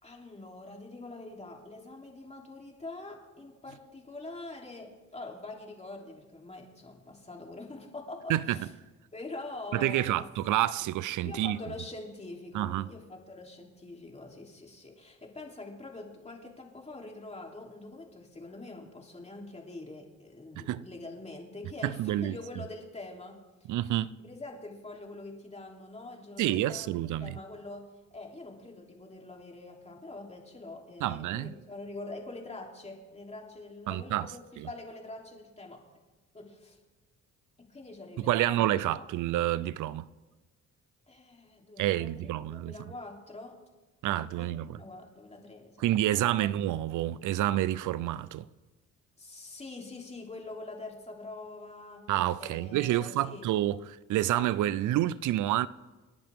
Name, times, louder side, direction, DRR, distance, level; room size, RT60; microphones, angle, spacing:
voice 1, 0.0-8.7 9.1-10.2 11.2-23.4 24.2-26.9 27.2-27.8 28.1-35.8 36.3-36.8 37.6-39.0 41.1-43.6 44.0-45.8 46.1-46.3 49.2-52.0 52.4-53.4, left 2 dB, 20° left, 3.3 m, -44 dB
voice 2, 9.7-11.6 12.5-12.9 20.6-20.9 21.8-22.4 23.7-24.1 26.4-27.4 31.0-31.5 33.9-34.7 38.2-40.1 41.8-42.9 44.0-44.8 45.8-48.5 52.1-53.8 54.1-55.7, right 13 dB, 80° right, 0.6 m, -28 dB
28.0 x 10.5 x 3.7 m
cardioid pair, 90°, 30 cm